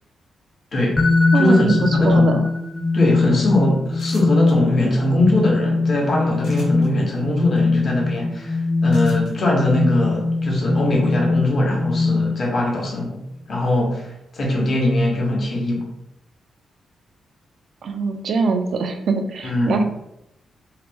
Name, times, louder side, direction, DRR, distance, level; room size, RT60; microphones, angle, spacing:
voice 1, 0.7-1.0 1.3-2.3 2.9-13.2 13.5-15.8 19.4-19.8, left 1 dB, 50° left, -1 dB, 0.9 m, -21 dB
sound 1, 1.0-12.7, left 3 dB, 10° left, 0.4 m, -21 dB
voice 2, 1.3-2.5 17.8-19.8, right 4 dB, 65° right, 6 dB, 0.3 m, -22 dB
sound 2, 4.0-4.5 6.4-6.9 8.9-9.3, left 2 dB, 85° left, 0.9 m, -43 dB
2.8 x 2.0 x 3.3 m, 0.83 s
cardioid pair, 90°, 0 cm